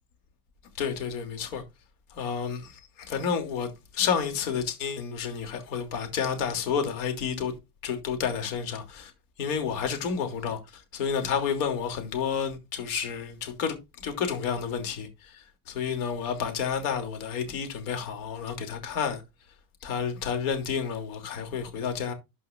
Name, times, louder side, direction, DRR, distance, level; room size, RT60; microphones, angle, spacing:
voice 1, 0.8-1.6 2.1-7.5 7.8-9.1 9.4-13.8 14.0-19.2 19.8-22.1, left 7 dB, 90° left, 3.0 m, -30 dB
12.5 x 5.5 x 2.5 m
cardioid pair, 170°, 41 cm